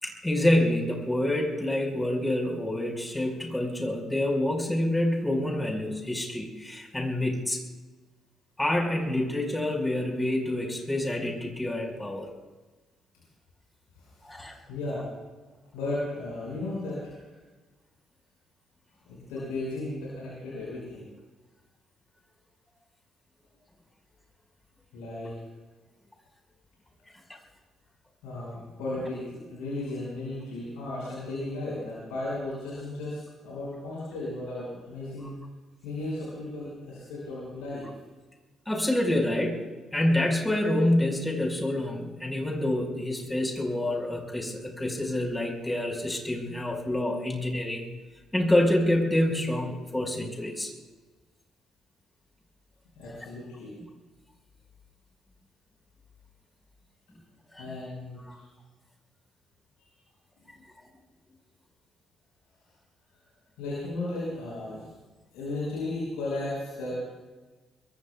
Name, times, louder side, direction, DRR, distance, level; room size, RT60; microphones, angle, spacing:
voice 1, 0.0-7.6 8.6-12.3 14.3-14.5 38.7-39.6 39.9-47.8 48.3-50.7 57.5-57.6 58.3-58.4, left 1 dB, 10° left, 1 dB, 5.3 m, -27 dB
voice 2, 14.0-15.1 15.7-17.1 19.0-21.1 24.9-25.4 28.2-35.4 35.8-37.9 52.9-53.7 57.6-58.4 63.6-64.9 65.3-67.0, left 2 dB, 70° left, -7 dB, 6.2 m, -35 dB
25.5 x 22.0 x 2.4 m, 1.3 s
figure-of-eight pair, 45°, 0 cm